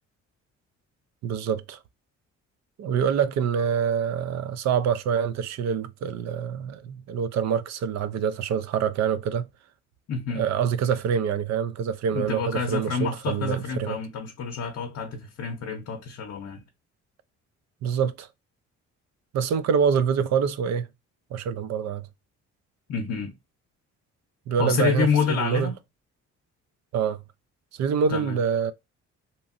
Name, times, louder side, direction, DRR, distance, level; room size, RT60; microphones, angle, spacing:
voice 1, 1.2-1.8 2.8-9.5 10.3-14.0 17.8-18.3 19.3-20.9 21.3-22.1 24.5-25.7 26.9-27.2 27.7-28.7, right 7 dB, 60° right, 0.4 m, -26 dB
voice 2, 10.1-10.5 12.1-16.6 22.9-23.3 24.6-25.7 28.1-28.4, left 6 dB, 55° left, 0.7 m, -28 dB
2.9 x 2.5 x 2.4 m
cardioid pair, 90°, 30 cm